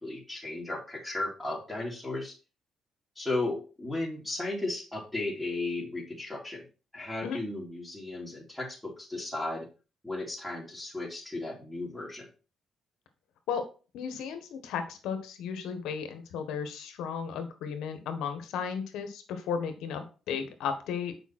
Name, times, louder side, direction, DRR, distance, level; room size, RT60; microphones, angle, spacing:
voice 1, 0.0-2.4 3.2-6.6 6.9-9.7 10.0-12.3, left 2 dB, 5° left, -4 dB, 2.7 m, -35 dB
voice 2, 13.9-21.1, left 6 dB, 90° left, 8 dB, 1.4 m, -34 dB
7.3 x 5.3 x 4.4 m, 0.34 s
cardioid pair, 90°, 0 cm